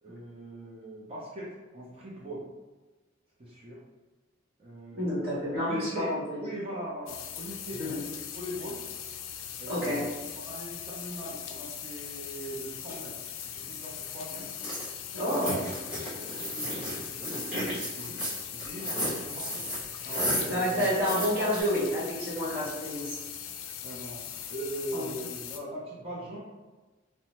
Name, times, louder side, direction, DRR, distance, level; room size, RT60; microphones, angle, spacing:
voice 1, 0.0-2.5 3.4-3.8 4.6-5.3 5.6-8.8 9.6-10.1 10.4-14.5 15.2-15.7 16.0-18.2 18.5-19.6 20.0-20.9 23.8-24.2 24.5-26.4, right 1 dB, 30° right, -6 dB, 0.6 m, -41 dB
voice 2, 5.0-6.4 7.8-8.0 9.7-10.0 15.1-15.6 20.5-23.2 24.9-25.1, equal, 55° right, -8 dB, 1.2 m, -29 dB
sound 1, 7.1-25.6, left 9 dB, 80° left, 0.3 m, -40 dB
sound 2, 14.5-14.9 15.3-21.6, equal, 5° right, 1.2 m, -33 dB
2.7 x 2.1 x 2.9 m, 1.2 s
head